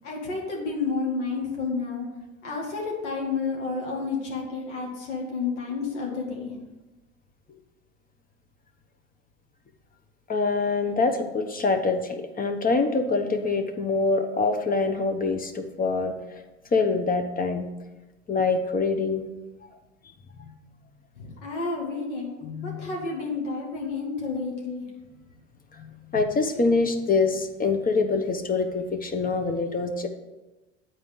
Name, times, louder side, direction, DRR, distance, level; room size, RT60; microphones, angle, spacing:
voice 1, 0.0-2.1 2.4-6.5 21.2-24.9 26.5-26.7, left 4 dB, 85° left, -2 dB, 2.0 m, -30 dB
voice 2, 10.3-16.4 16.7-17.7 18.3-19.2 22.4-22.9 25.7-25.9 26.1-30.1, left 3 dB, 25° left, 7 dB, 0.9 m, -25 dB
8.5 x 4.4 x 5.4 m, 1.1 s
hypercardioid pair, 85°, 35 cm